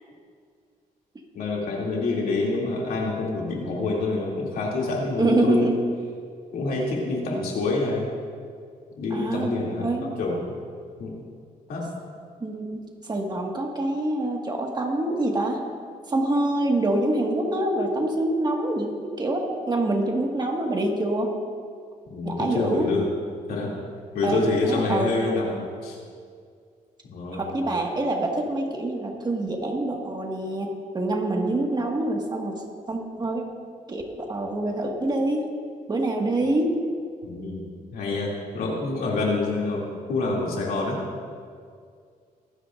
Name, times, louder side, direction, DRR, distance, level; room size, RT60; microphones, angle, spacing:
voice 1, 1.3-5.7 6.5-8.1 9.0-10.4 11.0-11.2 11.7-11.8 22.1-23.0 23.5-23.7 24.1-26.0 27.1-27.5 37.2-37.6 37.9-39.8 40.1-41.0, left 3 dB, 85° left, -3 dB, 2.8 m, -27 dB
voice 2, 5.2-5.7 9.1-9.5 9.8-10.1 12.4-12.7 13.0-15.6 16.1-21.3 22.2-22.9 24.2-25.6 27.3-32.5 32.9-33.4 33.9-35.4 35.9-36.8, right 2 dB, 30° right, 0 dB, 1.8 m, -25 dB
24.5 x 10.0 x 2.6 m, 2.2 s
cardioid pair, 110°, 15 cm